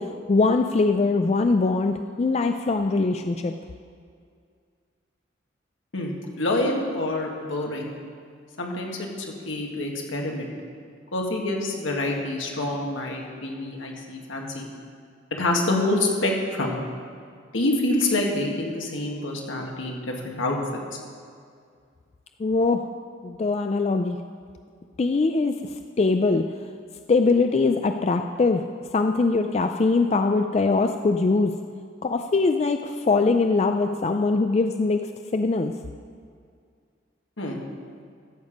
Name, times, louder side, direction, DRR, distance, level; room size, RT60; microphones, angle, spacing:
voice 1, 0.0-3.5 22.4-22.9 23.2-24.2 25.0-25.5 26.0-26.4 27.1-28.6 28.9-31.5 32.0-35.0 35.3-35.7, left 3 dB, 35° left, 6 dB, 0.3 m, -22 dB
voice 2, 5.9-7.9 8.6-10.5 11.1-14.7 15.4-16.8 17.5-20.6 20.9-21.0 37.4-37.6, left 2 dB, 85° left, 0 dB, 1.7 m, -27 dB
13.0 x 6.9 x 5.2 m, 2.2 s
head